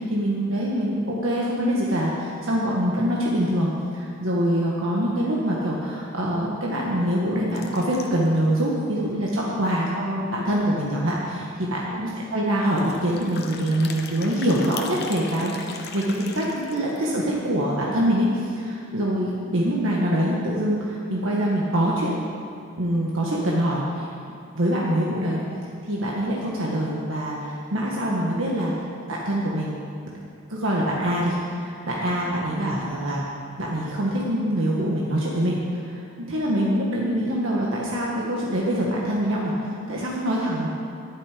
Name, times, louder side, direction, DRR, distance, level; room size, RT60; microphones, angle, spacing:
voice 1, 0.0-22.1 22.8-24.1 24.5-25.4 25.9-28.7 29.1-29.7 30.5-33.2 33.6-40.7, equal, 70° right, -4 dB, 1.5 m, -24 dB
sound 1, 7.5-8.4 8.9-9.0 9.2-9.3 9.7-9.8 11.0-11.1 11.4-11.7 12.7-17.4, left 5 dB, 50° left, 1.0 m, -40 dB
12.0 x 11.5 x 5.1 m, 2.5 s
head